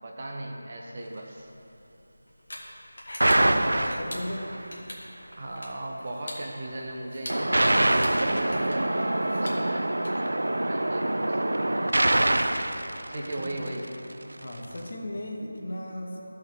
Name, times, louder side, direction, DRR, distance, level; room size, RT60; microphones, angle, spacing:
voice 1, 0.0-1.5 5.4-9.9 10.6-12.0 13.1-14.0, right 1 dB, 30° right, 0 dB, 0.7 m, -37 dB
sound 1, 1.4-10.1, left 1 dB, 65° left, 1.9 m, -44 dB
sound 2, 3.2-4.6 7.3-13.8, right 1 dB, 85° right, 0.5 m, -25 dB
voice 2, 3.7-4.5 13.1-13.5 14.4-16.3, left 1 dB, 45° left, -1 dB, 1.4 m, -36 dB
13.0 x 5.6 x 4.5 m, 2.8 s
figure-of-eight pair, 175°, 0 cm